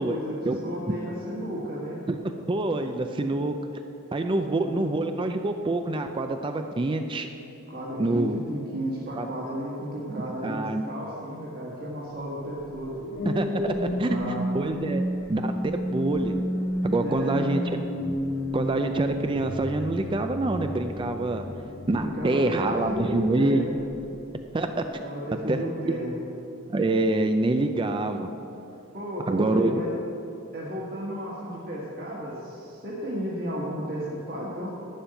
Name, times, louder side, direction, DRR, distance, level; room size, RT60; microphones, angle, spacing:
voice 1, 0.0-2.0 4.4-4.9 7.7-13.0 13.9-14.4 17.0-17.5 21.2-21.7 21.9-23.8 25.0-26.1 28.9-29.9 30.5-34.7, equal, 45° right, -6 dB, 1.6 m, -34 dB
voice 2, 2.5-3.6 4.1-7.3 8.0-8.4 9.2-9.3 10.2-10.8 13.3-14.2 14.5-15.0 15.3-16.4 16.8-17.6 18.5-21.4 21.9-23.7 24.5-25.0 25.5-25.6 26.7-28.3 29.3-29.8, right 2 dB, 20° right, 7 dB, 0.4 m, -26 dB
sound 1, 12.6-23.2 23.7-24.0, equal, 80° left, 2.4 m, -32 dB
11.5 x 5.4 x 8.8 m, 2.8 s
head